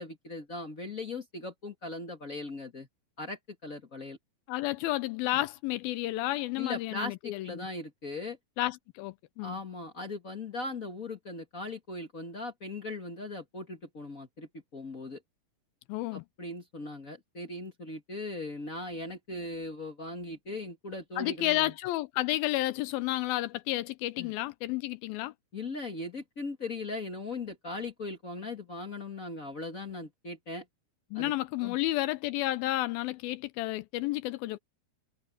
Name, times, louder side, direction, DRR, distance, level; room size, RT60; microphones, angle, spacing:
voice 1, 0.0-2.9 3.2-4.2 6.6-8.4 9.4-15.2 16.1-21.7 24.2-24.3 25.5-30.6 31.1-31.3 31.6-31.8, left 2 dB, 50° left, 1.0 m, -39 dB
voice 2, 4.5-7.7 8.6-9.6 15.9-16.2 21.2-25.3 31.1-34.6, left 17 dB, 80° left, 2.3 m, -31 dB
omnidirectional pair, 4.6 m